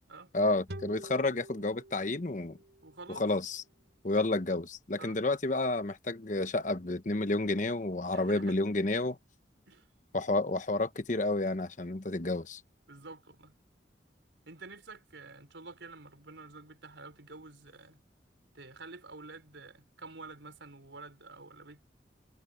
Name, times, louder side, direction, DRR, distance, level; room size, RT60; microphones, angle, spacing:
voice 1, 0.3-2.6 3.1-3.6 4.0-9.2 10.1-12.6, left 2 dB, 45° left, 1.0 m, -30 dB
sound 1, 0.7-4.0, right 1 dB, 70° right, 5.2 m, -49 dB
voice 2, 2.8-3.3 5.0-5.2 8.1-8.6 9.7-9.9 12.9-13.5 14.5-18.0 18.5-21.9, right 3 dB, 90° right, 5.1 m, -49 dB
head